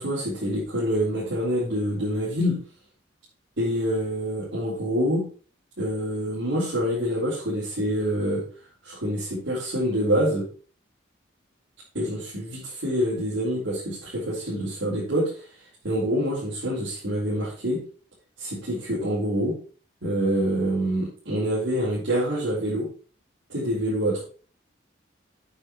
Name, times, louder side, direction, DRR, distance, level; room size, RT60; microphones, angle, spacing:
voice 1, 0.0-2.6 3.6-5.3 5.8-8.4 8.8-10.5 11.9-15.4 15.8-17.8 18.4-19.6 20.0-22.9 23.5-24.2, equal, 90° right, -9 dB, 4.4 m, -26 dB
9.0 x 6.3 x 4.5 m, 0.40 s
head